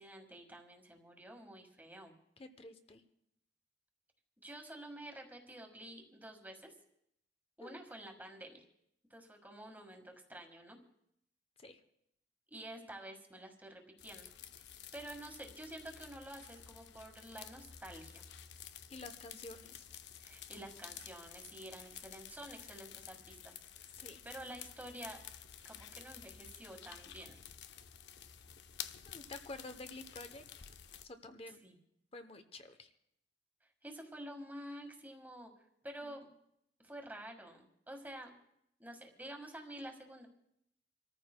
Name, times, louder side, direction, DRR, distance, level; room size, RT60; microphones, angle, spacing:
voice 1, 0.0-2.1 4.4-6.7 7.6-8.6 9.1-10.8 12.5-14.3 14.9-18.2 20.2-25.2 25.6-27.4 31.6-31.7 33.6-35.5 35.8-36.3 36.8-38.3 38.8-40.3, right 1 dB, 10° right, 2 dB, 1.6 m, -49 dB
voice 2, 2.4-3.0 7.6-7.8 11.6-11.8 18.9-19.9 23.9-24.2 29.1-30.4 31.0-31.6 32.1-32.9 36.0-36.2, left 2 dB, 35° left, 9 dB, 0.7 m, -50 dB
sound 1, 14.0-31.1, left 9 dB, 70° left, 0.6 m, -51 dB
28.0 x 14.0 x 2.2 m, 0.77 s
head